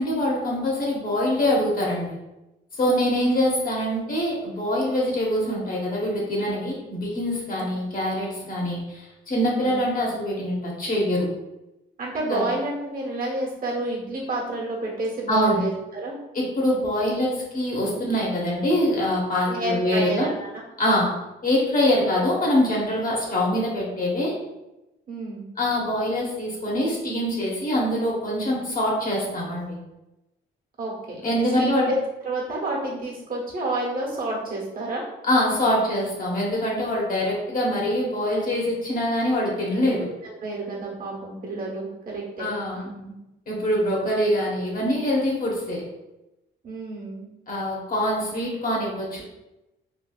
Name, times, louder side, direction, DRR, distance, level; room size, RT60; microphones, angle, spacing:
voice 1, 0.0-2.2 2.8-11.3 12.3-12.5 15.3-15.6 16.3-20.3 20.8-21.1 21.4-24.3 25.6-29.8 31.2-31.9 35.3-40.1 42.4-42.8 43.5-45.8 47.5-49.2, left 1 dB, 45° left, -3 dB, 1.1 m, -24 dB
voice 2, 12.0-16.2 19.5-20.5 25.1-25.5 30.8-32.0 32.2-35.0 39.7-39.9 40.2-42.5 42.7-43.2 46.6-47.3, right 2 dB, 45° right, -3 dB, 1.2 m, -30 dB
3.2 x 2.7 x 2.4 m, 0.96 s
cardioid pair, 90°, 20 cm